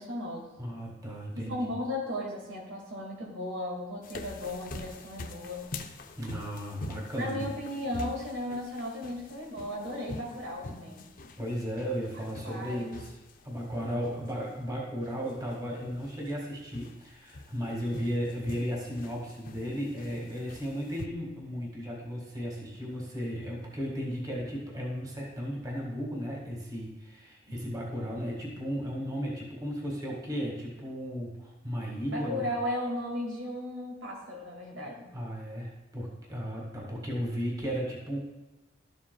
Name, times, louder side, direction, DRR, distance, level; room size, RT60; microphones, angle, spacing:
voice 1, 0.0-0.5 1.3-5.7 7.2-11.0 12.4-13.0 32.1-35.1, left 1 dB, 85° right, -1 dB, 2.1 m, -35 dB
voice 2, 0.6-1.7 6.1-7.4 11.4-13.1 13.4-32.5 35.1-38.2, equal, 20° right, -3 dB, 1.8 m, -35 dB
sound 1, 4.0-21.1, left 2 dB, 45° left, 0.5 m, -45 dB
12.5 x 7.4 x 2.3 m, 1.1 s
head